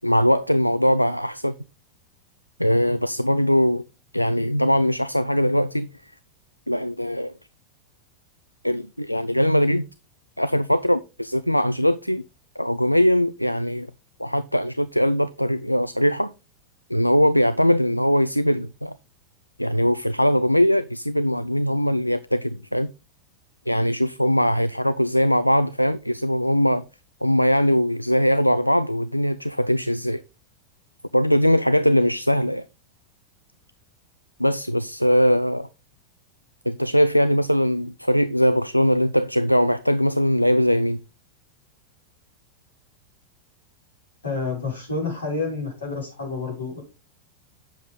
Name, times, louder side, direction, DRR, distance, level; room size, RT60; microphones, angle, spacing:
voice 1, 0.0-1.6 2.6-3.8 4.1-5.9 6.7-7.3 8.6-9.9 10.4-12.2 12.6-13.9 14.2-16.3 16.9-19.0 19.6-22.9 23.7-26.9 27.2-30.2 31.1-32.7 34.4-35.7 36.7-41.0, equal, 90° left, 0.4 m, -21 dB
voice 2, 44.2-46.8, left 3 dB, 70° left, 6.3 m, -29 dB
9.2 x 7.2 x 3.8 m
figure-of-eight pair, 90°, 0 cm